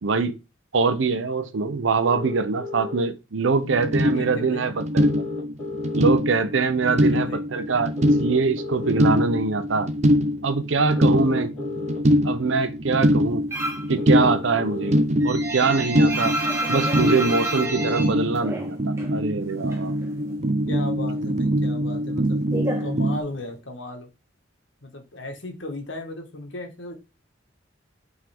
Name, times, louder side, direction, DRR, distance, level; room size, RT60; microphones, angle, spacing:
voice 1, 0.0-0.4 0.7-5.1 5.9-9.9 10.4-11.5 12.2-13.4 13.9-15.0 15.2-16.4 16.7-19.9, right 4 dB, 80° right, 0.6 m, -23 dB
sound 1, 2.0-3.0 5.0-6.0 8.0-9.0 11.0-12.0 14.0-15.0 17.0-18.0, left 3 dB, 5° left, 3.9 m, -33 dB
voice 2, 3.5-3.8 4.1-4.7 6.9-7.4 10.9-11.9 20.7-22.4 22.8-24.1 24.8-27.0, left 2 dB, 70° left, 1.6 m, -36 dB
sound 2, 3.6-23.2, equal, 35° right, 0.6 m, -24 dB
sound 3, 13.5-13.9 14.3-19.2 19.4-20.5 20.8-23.6, right 1 dB, 15° right, 1.3 m, -30 dB
8.9 x 3.7 x 3.5 m
head